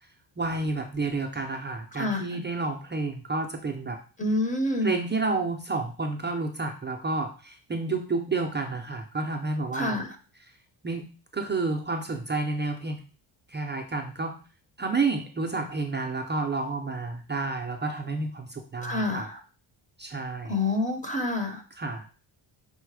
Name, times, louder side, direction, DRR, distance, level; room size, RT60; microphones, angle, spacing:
voice 1, 0.4-4.0 4.8-10.0 10.8-11.0 11.3-13.0 13.5-14.3 14.8-19.3 20.0-20.5 21.8-22.1, right 3 dB, 25° right, 2 dB, 0.4 m, -30 dB
voice 2, 1.9-2.2 4.2-4.9 9.7-10.2 18.8-19.4 20.5-21.6, left 2 dB, 15° left, 4 dB, 0.7 m, -27 dB
5.5 x 2.1 x 4.6 m, 0.37 s
wide cardioid pair, 155°, 50 cm